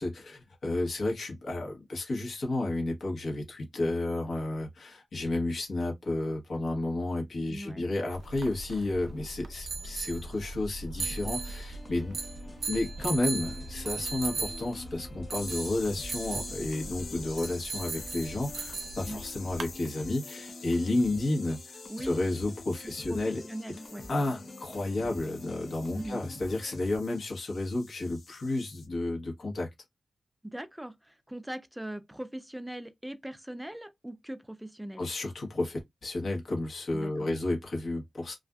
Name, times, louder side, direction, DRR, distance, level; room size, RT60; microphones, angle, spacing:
voice 1, 0.0-12.2 12.7-23.4 24.1-29.7 35.0-38.4, left 2 dB, 65° left, 1.1 m, -32 dB
voice 2, 7.5-7.9 19.1-19.2 21.9-22.2 22.8-24.0 25.9-26.2 30.4-35.0 36.9-37.3, right 1 dB, 5° right, 0.4 m, -40 dB
sound 1, 8.1-19.7, right 4 dB, 85° right, 0.4 m, -38 dB
sound 2, 11.0-27.0, left 1 dB, 30° left, 0.7 m, -47 dB
sound 3, 15.4-28.9, left 4 dB, 90° left, 0.6 m, -48 dB
2.5 x 2.4 x 2.3 m
wide cardioid pair, 125°, 0 cm